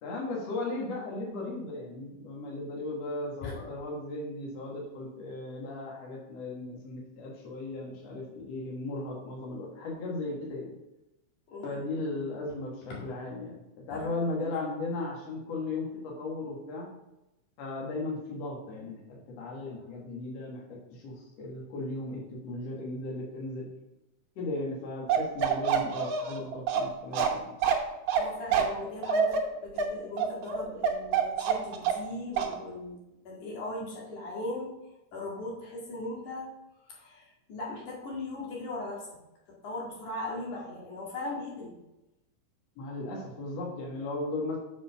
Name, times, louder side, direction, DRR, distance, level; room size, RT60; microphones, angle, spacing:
voice 1, 0.0-10.8 11.6-16.9 17.6-23.7 24.4-27.5 42.8-44.6, left 2 dB, 60° left, -2 dB, 2.5 m, -36 dB
voice 2, 11.5-11.8 12.9-13.0 13.9-14.1 14.4-14.5 28.2-33.0 33.3-34.8 35.1-36.5 36.8-39.1 39.6-41.8, left 2 dB, 80° left, -3 dB, 3.5 m, -39 dB
Bark, 25.1-32.1 32.4-32.6, right 7 dB, 70° right, 2.3 m, -26 dB
7.3 x 5.6 x 5.6 m, 0.93 s
omnidirectional pair, 3.5 m